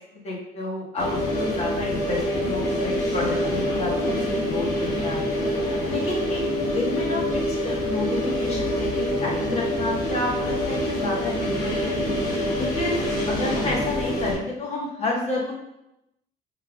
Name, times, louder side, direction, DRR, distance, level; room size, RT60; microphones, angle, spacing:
voice 1, 0.1-5.5 5.9-11.9 12.5-13.0 13.3-15.5, left 2 dB, 40° left, -3 dB, 1.5 m, -30 dB
sound 1, 1.0-14.3, left 1 dB, 75° left, 1.2 m, -26 dB
5.5 x 3.4 x 2.4 m, 0.87 s
cardioid pair, 110°, 17 cm